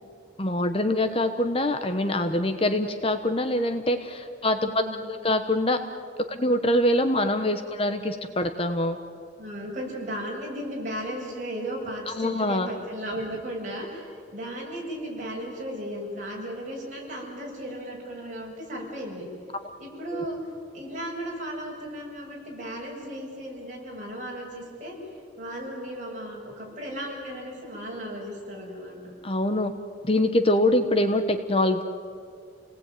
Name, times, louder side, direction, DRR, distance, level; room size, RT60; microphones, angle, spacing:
voice 1, 0.4-5.8 6.3-9.0 12.1-12.7 20.1-20.2 29.2-29.7 30.0-31.8, left 1 dB, 30° left, 7 dB, 1.1 m, -24 dB
voice 2, 4.6-5.1 9.4-19.3 19.8-20.4 20.7-25.0 25.4-29.1, equal, 40° right, -2 dB, 7.7 m, -35 dB
29.5 x 19.0 x 9.3 m, 2.3 s
head